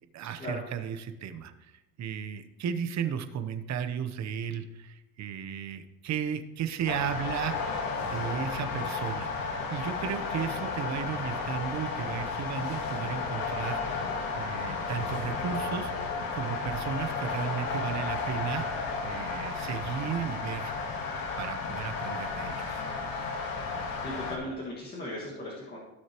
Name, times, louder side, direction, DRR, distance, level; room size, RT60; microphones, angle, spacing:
voice 1, 0.1-15.9 16.3-18.6 19.0-20.7 21.4-22.8, right 8 dB, 45° right, 9 dB, 0.9 m, -35 dB
sound 1, 6.9-24.4, left 4 dB, 65° left, 1.7 m, -33 dB
voice 2, 24.0-25.8, left 1 dB, 25° left, -5 dB, 1.8 m, -37 dB
16.0 x 6.3 x 3.0 m, 1.0 s
cardioid pair, 130°, 38 cm